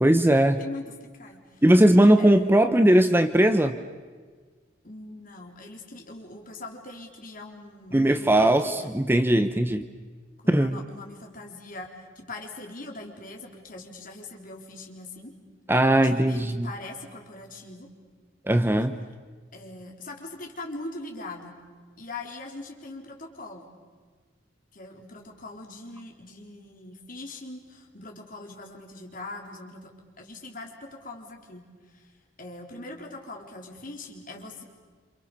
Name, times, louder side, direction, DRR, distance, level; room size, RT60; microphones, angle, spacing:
voice 1, 0.0-0.6 1.6-3.8 7.9-9.8 10.5-10.8 15.7-16.7 18.5-18.9, right 1 dB, 10° right, 9 dB, 0.9 m, -19 dB
voice 2, 0.6-1.6 2.2-2.6 4.8-8.9 10.4-15.4 16.0-17.9 19.5-21.6 22.0-23.7 24.7-32.1 32.4-34.6, left 2 dB, 45° left, 2 dB, 4.0 m, -42 dB
28.0 x 27.5 x 6.9 m, 1.5 s
head